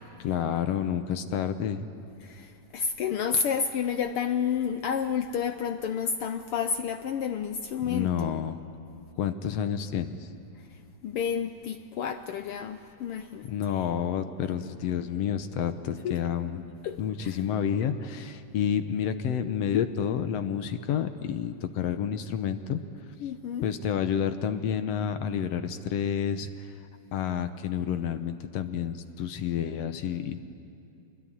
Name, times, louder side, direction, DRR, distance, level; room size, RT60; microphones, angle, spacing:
voice 1, 0.2-1.8 7.8-8.6 9.2-10.2 13.5-16.6 17.0-22.8 23.6-26.5 27.1-30.4, left 8 dB, 70° left, 10 dB, 1.8 m, -29 dB
voice 2, 2.2-8.4 11.0-13.5 16.0-16.2 16.8-17.4 23.2-23.7, left 7 dB, 85° left, 9 dB, 1.2 m, -30 dB
26.0 x 20.5 x 10.0 m, 2.7 s
omnidirectional pair, 3.4 m